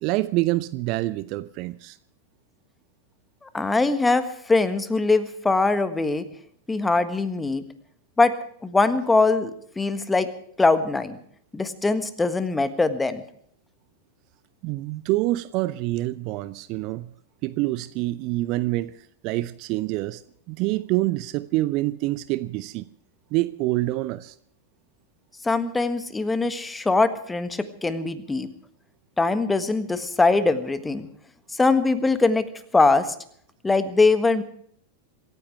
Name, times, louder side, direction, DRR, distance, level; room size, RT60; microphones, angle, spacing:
voice 1, 0.0-2.0 14.6-17.1 17.4-18.9 19.2-20.2 20.5-22.8 23.3-24.3, right 18 dB, 40° right, 0.7 m, -26 dB
voice 2, 3.4-6.2 6.7-7.6 8.2-8.3 8.6-10.3 10.6-11.2 11.5-13.2 25.4-28.5 29.2-31.1 31.5-32.5 32.7-33.1 33.6-34.4, left 3 dB, 10° left, 1.5 m, -22 dB
26.5 x 15.0 x 3.4 m
figure-of-eight pair, 90°, 0 cm